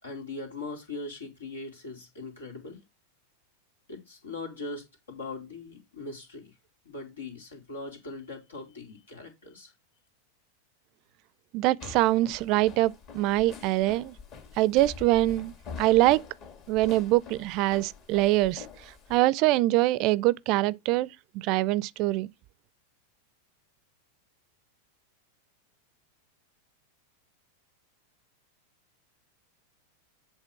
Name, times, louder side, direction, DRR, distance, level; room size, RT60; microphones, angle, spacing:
voice 1, 0.0-2.8 3.9-6.5 6.8-9.7, left 3 dB, 85° left, 2.8 m, -40 dB
voice 2, 11.5-14.2 14.6-16.2 16.7-18.6 19.1-21.1 21.3-22.3, right 17 dB, 50° right, 0.4 m, -24 dB
sound 1, 11.8-19.2, left 6 dB, 45° left, 1.9 m, -45 dB
8.2 x 3.4 x 5.8 m
hypercardioid pair, 100°, 0 cm